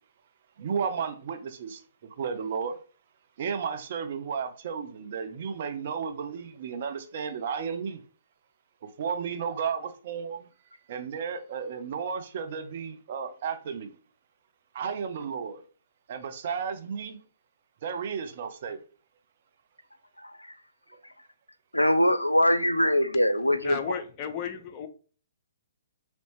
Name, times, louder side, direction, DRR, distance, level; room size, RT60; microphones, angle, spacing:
voice 1, 0.6-1.8 2.1-2.8 3.4-8.0 8.8-10.5 10.9-13.9 14.7-15.6 16.1-17.2 17.8-18.8, right 6 dB, 45° right, 0.6 m, -33 dB
voice 2, 20.2-20.5 21.7-23.8, left 1 dB, 85° left, 0.4 m, -23 dB
voice 3, 23.6-24.9, left 8 dB, 30° left, 0.6 m, -34 dB
4.1 x 3.0 x 3.1 m
figure-of-eight pair, 125°, 0 cm